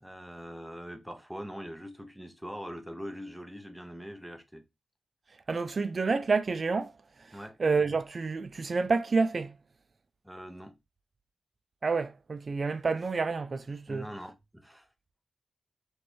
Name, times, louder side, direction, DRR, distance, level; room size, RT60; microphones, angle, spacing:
voice 1, 0.0-4.6 7.3-7.6 10.2-10.8 13.9-14.9, equal, ahead, 0.7 m, -42 dB
voice 2, 5.5-6.9 7.2-9.6 11.8-14.1, right 4 dB, 40° right, 0.4 m, -29 dB
3.2 x 3.1 x 4.2 m
wide cardioid pair, 145°, 0 cm